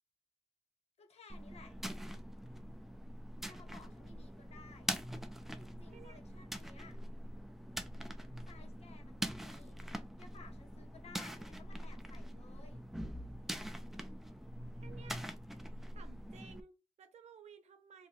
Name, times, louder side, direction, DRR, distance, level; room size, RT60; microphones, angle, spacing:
voice 1, 1.0-1.8 3.4-4.9 5.6-7.0 8.5-9.8 10.2-12.8, left 5 dB, 70° left, 1.0 m, -58 dB
sound 1, 1.3-16.6, equal, 5° right, 0.5 m, -44 dB
voice 2, 14.8-15.2 15.9-18.1, right 7 dB, 80° right, 0.7 m, -56 dB
2.8 x 2.7 x 4.2 m
wide cardioid pair, 100°, 11 cm